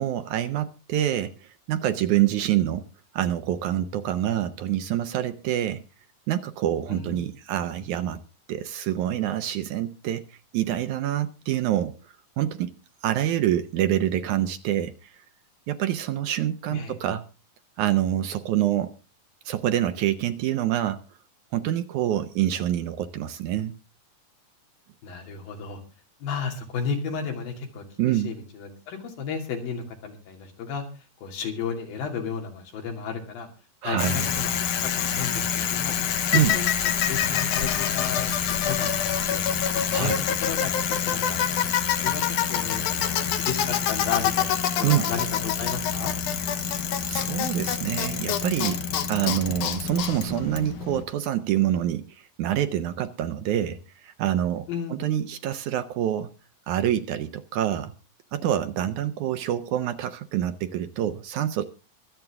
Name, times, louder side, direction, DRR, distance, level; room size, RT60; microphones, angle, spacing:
voice 1, 0.0-2.9 3.1-5.8 6.3-8.2 8.5-12.0 12.4-12.7 13.0-15.1 15.7-17.3 17.8-18.9 19.5-21.0 21.5-23.7 28.0-28.3 33.8-34.3 36.3-36.6 39.9-40.2 44.8-45.1 47.1-48.8 49.1-56.3 56.7-57.9 58.3-61.6, right 11 dB, 75° right, 1.9 m, -26 dB
voice 2, 6.9-7.2 16.7-16.9 25.0-25.8 26.2-30.8 31.2-33.5 33.8-36.0 36.3-38.9 39.2-39.4 39.9-40.1 40.4-40.7 41.0-41.6 42.0-42.2 42.5-46.1 54.7-55.1, left 6 dB, 90° left, 4.3 m, -33 dB
Bicycle, 34.0-51.0, left 8 dB, 70° left, 2.5 m, -26 dB
24.0 x 8.2 x 3.6 m
omnidirectional pair, 4.0 m